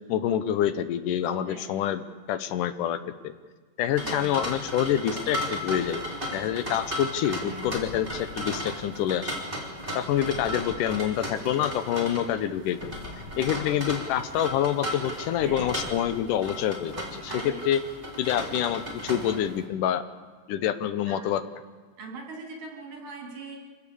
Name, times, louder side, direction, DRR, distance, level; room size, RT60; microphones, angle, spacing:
voice 1, 0.1-2.0 2.3-3.0 3.2-3.3 3.8-6.0 6.3-9.3 10.0-12.9 13.4-17.8 18.2-20.0 20.5-21.4, left 10 dB, 85° left, 11 dB, 2.5 m, -27 dB
sound 1, 4.0-19.6, equal, 15° right, 3.6 m, -35 dB
sound 2, 7.7-9.4 10.2-11.9 12.8-14.6 15.4-17.2, left 3 dB, 45° left, 1.8 m, -46 dB
voice 2, 13.4-13.7 15.4-15.8 17.3-17.6 18.3-18.4 19.0-19.3 21.1-21.2 22.0-23.6, right 2 dB, 80° right, -1 dB, 5.3 m, -42 dB
26.5 x 16.5 x 7.1 m, 1.4 s
omnidirectional pair, 3.6 m